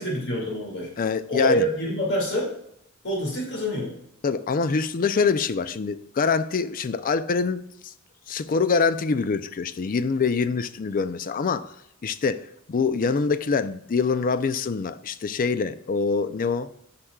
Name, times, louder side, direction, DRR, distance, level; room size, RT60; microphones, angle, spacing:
voice 1, 0.0-0.9 1.3-2.5 3.0-3.9, equal, 60° left, 2.2 m, -26 dB
voice 2, 1.0-1.6 4.2-7.9 8.3-11.7 12.0-16.7, left 5 dB, 40° left, 0.4 m, -25 dB
9.9 x 5.9 x 2.3 m
head